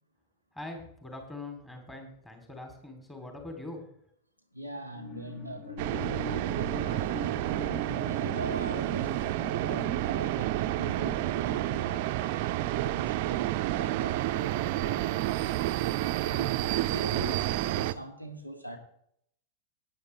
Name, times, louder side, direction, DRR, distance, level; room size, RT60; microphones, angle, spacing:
voice 1, 0.5-3.8, left 2 dB, 10° left, 2.8 m, -42 dB
voice 2, 4.5-6.3 6.6-7.3 8.0-15.3 16.2-16.5 16.8-18.8, right 1 dB, 90° left, 2.1 m, -42 dB
sound 1, 4.8-12.6 13.1-13.2, left 6 dB, 40° left, 2.2 m, -44 dB
sound 2, 5.8-17.9, right 15 dB, 50° right, 0.5 m, -30 dB
Trumpet, 6.7-14.9, left 1 dB, 65° left, 2.9 m, -59 dB
18.5 x 9.6 x 3.2 m
figure-of-eight pair, 90°, 0 cm